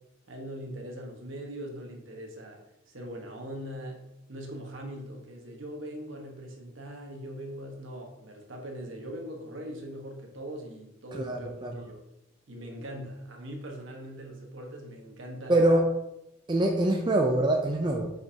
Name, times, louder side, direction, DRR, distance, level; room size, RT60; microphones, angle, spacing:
voice 1, 0.3-2.6 2.9-4.0 4.3-12.0 12.5-15.7, equal, 65° right, 1 dB, 1.3 m, -41 dB
voice 2, 11.1-11.8 15.5-15.9 16.5-18.1, right 1 dB, 20° right, 1 dB, 0.5 m, -24 dB
7.7 x 5.3 x 2.8 m, 0.90 s
head